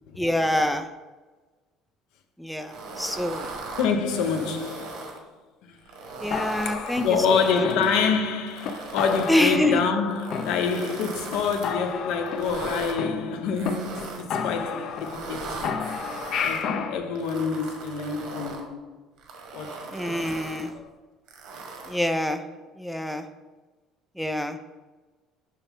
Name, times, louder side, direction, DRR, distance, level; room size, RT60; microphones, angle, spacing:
voice 1, 0.2-0.9 2.4-3.5 6.2-7.0 7.3-7.7 9.3-9.8 19.9-20.7 21.9-22.4 22.8-23.3 24.2-24.6, left 1 dB, ahead, 0.3 m, -26 dB
sound 1, 2.6-5.2 5.8-8.0 8.5-9.6 10.1-11.7 12.3-13.0 13.6-14.4 14.9-16.6 17.2-18.7 19.2-20.7 21.3-22.2, right 3 dB, 70° right, 1.5 m, -39 dB
voice 2, 3.8-5.1 5.7-5.8 6.6-15.9 16.4-18.9 19.5-20.2 20.7-20.9, left 5 dB, 75° left, 0.9 m, -27 dB
sound 2, 6.3-8.3 8.6-8.7 9.0-10.0 10.3-11.0 11.3-11.4 11.6-13.7 14.0-14.1 14.3-15.3 15.6-17.0, left 6 dB, 45° left, 0.6 m, -32 dB
6.6 x 5.9 x 3.5 m
cardioid pair, 160°, 0 cm